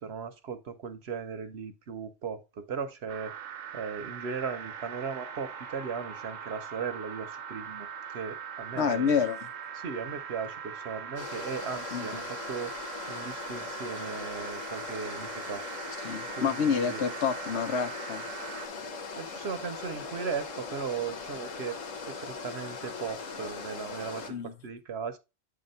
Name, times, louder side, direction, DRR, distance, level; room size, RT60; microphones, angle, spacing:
voice 1, 0.0-3.3 3.7-9.2 9.7-12.7 13.1-15.6 16.4-17.0 18.8-21.8 22.0-25.2, right 6 dB, 60° right, 1.0 m, -37 dB
sound 1, 3.1-18.7, right 7 dB, 90° right, 1.2 m, -41 dB
voice 2, 8.8-9.5 11.9-12.1 16.0-18.2 24.3-24.5, left 6 dB, 65° left, 0.9 m, -28 dB
sound 2, 11.2-24.3, left 4 dB, 90° left, 1.4 m, -40 dB
8.4 x 2.8 x 5.3 m
omnidirectional pair, 1.3 m